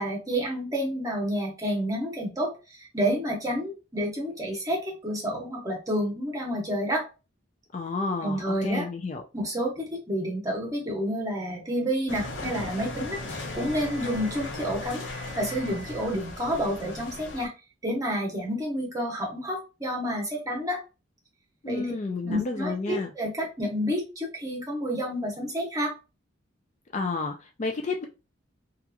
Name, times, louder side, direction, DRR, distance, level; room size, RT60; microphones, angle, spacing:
voice 1, 0.0-7.0 8.2-8.9 9.3-15.0 15.4-17.5 17.8-20.8 21.6-21.9 22.2-25.9, equal, 20° right, -1 dB, 0.9 m, -29 dB
voice 2, 7.7-9.2 21.6-23.1 26.9-28.0, left 3 dB, 35° left, 4 dB, 0.4 m, -31 dB
sound 1, 12.1-17.5, left 2 dB, 70° left, 0.8 m, -37 dB
2.9 x 2.4 x 2.3 m, 0.29 s
head